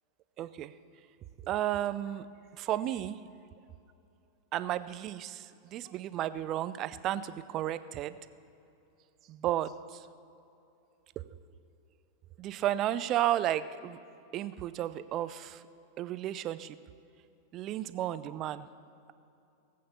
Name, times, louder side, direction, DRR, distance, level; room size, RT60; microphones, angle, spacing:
voice 1, 0.4-0.7 1.4-2.3 2.6-3.2 4.5-8.2 9.3-10.1 11.2-11.3 12.4-14.0 14.3-15.6 16.0-16.8 17.5-18.7, right 12 dB, 35° right, 15 dB, 0.5 m, -33 dB
18.0 x 8.6 x 6.9 m, 2.8 s
figure-of-eight pair, 90°, 0 cm